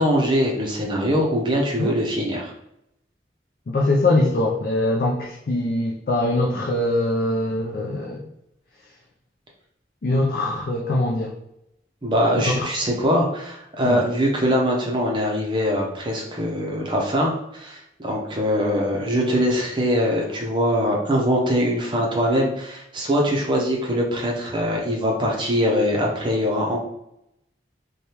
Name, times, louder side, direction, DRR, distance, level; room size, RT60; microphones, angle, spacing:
voice 1, 0.0-2.5 12.0-26.8, equal, 25° right, -1 dB, 0.6 m, -22 dB
voice 2, 3.7-8.2 10.0-11.3 12.4-12.7 13.8-14.1, left 2 dB, 50° left, -2 dB, 0.4 m, -22 dB
3.3 x 2.2 x 2.8 m, 0.81 s
head